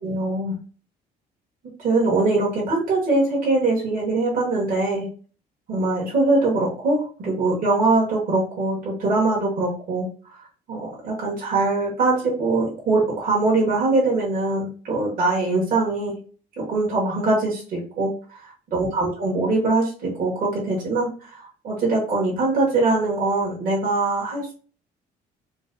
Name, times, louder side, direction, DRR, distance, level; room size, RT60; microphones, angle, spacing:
voice 1, 0.0-0.5 1.8-5.1 5.7-10.4 10.7-16.2 16.6-24.5, right 2 dB, 55° right, -3 dB, 1.1 m, -22 dB
3.8 x 2.2 x 2.5 m, 0.40 s
cardioid pair, 110°, 17 cm